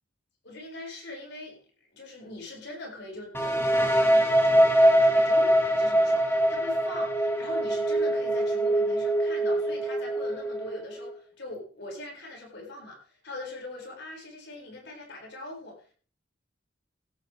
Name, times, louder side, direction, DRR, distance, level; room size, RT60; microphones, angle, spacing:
voice 1, 0.4-1.6 1.9-15.9, left 2 dB, 60° left, -1 dB, 7.5 m, -42 dB
sound 1, 3.3-11.1, right 1 dB, 10° left, 2.4 m, -23 dB
17.5 x 12.5 x 3.8 m, 0.41 s
head